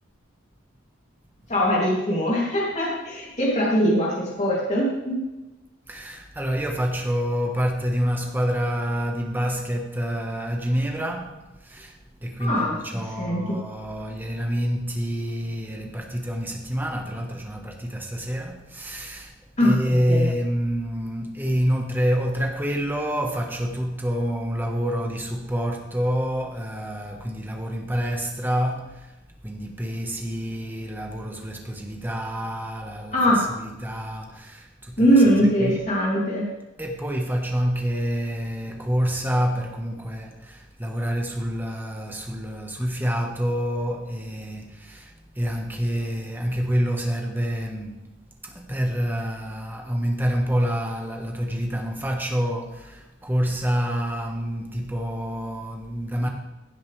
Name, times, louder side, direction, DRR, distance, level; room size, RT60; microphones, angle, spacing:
voice 1, 1.5-5.2 12.4-12.7 13.2-13.6 19.6-19.7 20.1-20.3 33.1-33.4 35.0-36.4, equal, 35° left, 2.9 m, -21 dB
voice 2, 5.9-29.2 29.4-35.8 36.8-48.1 48.4-56.3, equal, 10° right, 1.4 m, -27 dB
16.0 x 7.8 x 3.4 m
head